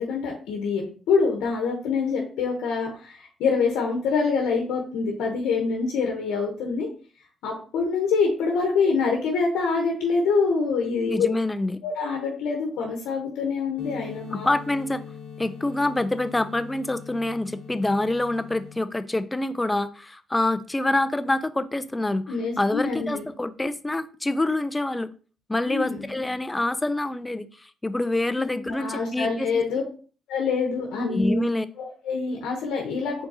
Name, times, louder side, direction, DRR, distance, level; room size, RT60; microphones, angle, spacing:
voice 1, 0.0-6.9 7.4-11.3 11.8-14.5 22.3-23.3 25.6-26.1 28.4-29.8 30.3-31.4 31.8-33.3, left 4 dB, 90° left, 0 dB, 0.8 m, -25 dB
voice 2, 11.1-11.8 14.3-15.0 15.4-25.1 25.5-29.5 31.1-31.7, left 2 dB, 15° left, 13 dB, 0.4 m, -26 dB
sound 1, 13.8-18.8, left 7 dB, 60° left, 1.0 m, -42 dB
4.6 x 3.9 x 2.7 m, 0.40 s
cardioid pair, 90°, 0 cm